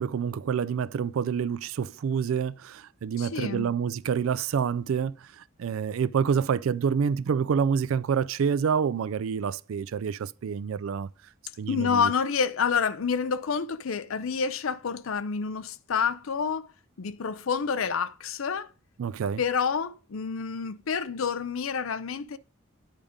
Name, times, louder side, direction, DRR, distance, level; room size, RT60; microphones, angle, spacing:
voice 1, 0.0-11.1 11.6-12.1 19.0-19.4, right 7 dB, 80° right, 0.3 m, -27 dB
voice 2, 3.2-3.7 11.7-16.7 17.0-18.7 19.4-22.4, left 6 dB, 80° left, 0.5 m, -28 dB
9.1 x 5.1 x 5.1 m
head